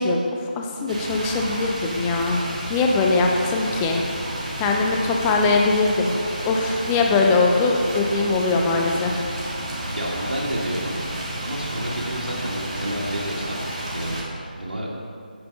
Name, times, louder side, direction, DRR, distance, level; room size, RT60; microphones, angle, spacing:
voice 1, 0.0-2.4 2.7-4.0 4.6-6.1 6.4-9.2, left 3 dB, 10° left, 1 dB, 0.4 m, -21 dB
sound 1, 0.9-14.2, right 1 dB, 40° right, 1.7 m, -31 dB
voice 2, 9.9-11.0 11.4-13.6 13.9-14.2 14.5-14.9, right 1 dB, 85° right, -4 dB, 1.7 m, -29 dB
9.0 x 4.3 x 5.3 m, 2.4 s
figure-of-eight pair, 165°, 5 cm